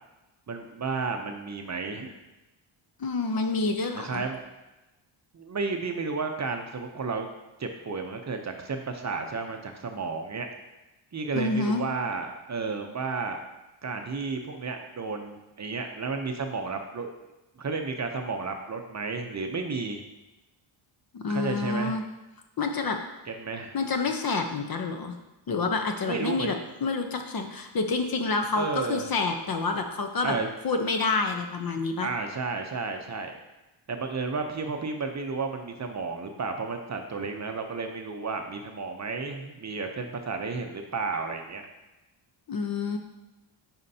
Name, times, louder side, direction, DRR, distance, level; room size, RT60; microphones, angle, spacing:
voice 1, 0.5-2.1 3.9-4.4 5.3-7.3 7.6-10.5 11.1-13.4 13.8-17.1 17.6-20.0 21.3-22.0 23.3-23.8 26.0-26.6 28.5-29.1 30.2-30.5 32.0-33.4 33.9-41.6, right 4 dB, 35° right, 4 dB, 0.6 m, -32 dB
voice 2, 3.0-4.2 11.3-11.8 21.1-22.0 22.6-23.0 23.7-25.2 25.5-30.3 30.6-32.1 42.5-43.0, left 3 dB, 45° left, 5 dB, 0.8 m, -28 dB
9.5 x 4.4 x 2.7 m, 1.0 s
cardioid pair, 100°, 49 cm